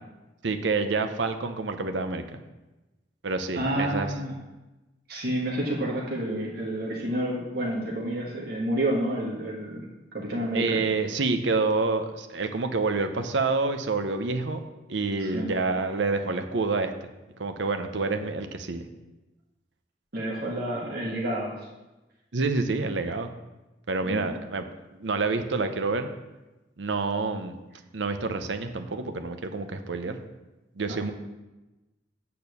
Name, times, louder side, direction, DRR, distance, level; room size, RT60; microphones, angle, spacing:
voice 1, 0.4-2.2 3.2-4.1 10.5-14.6 14.9-16.9 17.4-18.8 22.3-23.3 23.9-26.1 26.8-27.6 27.9-30.2 30.8-31.1, right 3 dB, 80° right, 7 dB, 0.7 m, -28 dB
voice 2, 3.5-4.3 5.1-10.8 15.2-15.5 20.1-21.7 24.0-24.4 30.9-31.1, right 1 dB, 55° right, -4 dB, 1.6 m, -30 dB
8.5 x 4.4 x 6.9 m, 1.1 s
head